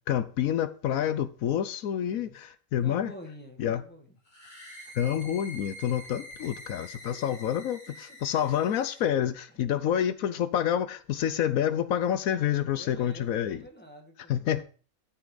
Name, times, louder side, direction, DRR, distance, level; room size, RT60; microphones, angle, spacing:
voice 1, 0.1-3.1 3.6-3.8 4.9-13.6 14.3-14.6, left 10 dB, 75° left, 1.1 m, -28 dB
voice 2, 2.8-4.2 6.8-7.4 7.9-8.0 9.5-9.8 12.7-14.6, equal, 5° left, 1.9 m, -48 dB
sound 1, 4.3-9.1, equal, 30° left, 2.6 m, -46 dB
12.5 x 6.2 x 3.9 m
omnidirectional pair, 1.5 m